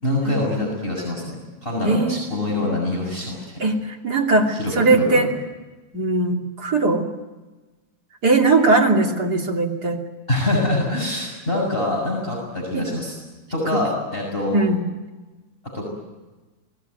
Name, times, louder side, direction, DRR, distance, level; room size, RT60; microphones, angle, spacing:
voice 1, 0.0-3.7 4.5-5.2 10.3-13.1 13.5-14.7 15.7-15.9, left 2 dB, 25° left, -2 dB, 6.7 m, -25 dB
voice 2, 1.8-2.3 3.6-3.8 4.0-5.3 5.9-7.0 8.2-10.0 12.7-12.9 13.7-13.8 14.5-14.8, right 3 dB, 55° right, 1 dB, 3.4 m, -19 dB
29.0 x 20.5 x 9.5 m, 1.2 s
omnidirectional pair, 2.1 m